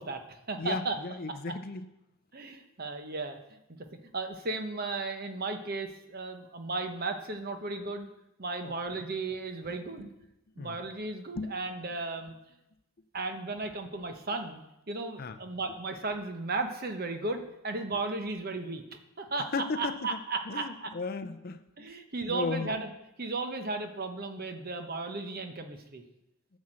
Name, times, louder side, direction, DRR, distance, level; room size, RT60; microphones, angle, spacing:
voice 1, 0.0-1.0 2.3-3.4 4.1-8.1 8.4-10.1 10.6-12.3 13.1-14.6 14.9-18.8 19.2-20.9 21.8-22.9 23.2-26.0, right 3 dB, 45° right, 6 dB, 1.0 m, -35 dB
voice 2, 0.6-1.9 8.6-9.0 10.6-10.8 11.3-11.6 15.2-15.4 19.5-20.2 20.5-21.9 22.3-22.7, left 3 dB, 45° left, 10 dB, 0.5 m, -35 dB
9.5 x 6.3 x 7.6 m, 0.89 s
head